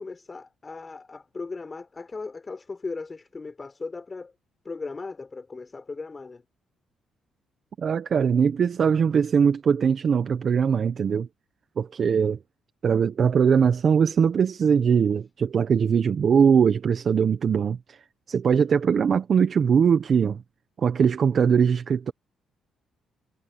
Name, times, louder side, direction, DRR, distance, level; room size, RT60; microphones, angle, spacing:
voice 1, 0.0-4.3 4.6-6.4 18.6-18.7, left 3 dB, 30° left, 4.1 m, -37 dB
voice 2, 7.8-11.3 11.8-12.4 12.8-18.0 18.3-20.4 20.8-22.1, right 6 dB, 50° right, 1.2 m, -21 dB
cardioid pair, 90°, 0 cm